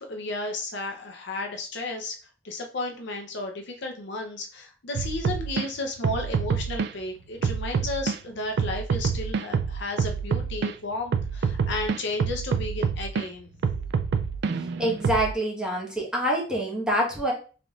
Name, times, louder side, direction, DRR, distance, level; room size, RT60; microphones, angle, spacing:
voice 1, 0.0-2.2 2.4-13.5, left 2 dB, 65° left, 3 dB, 0.6 m, -33 dB
sound 1, 4.9-5.7 6.0-6.9 7.4-8.2 8.6-10.7 11.1-13.2 13.6-15.3, right 6 dB, 65° right, 0.3 m, -27 dB
voice 2, 14.8-17.3, right 1 dB, 5° right, -3 dB, 1.2 m, -26 dB
3.9 x 3.5 x 2.4 m, 0.36 s
head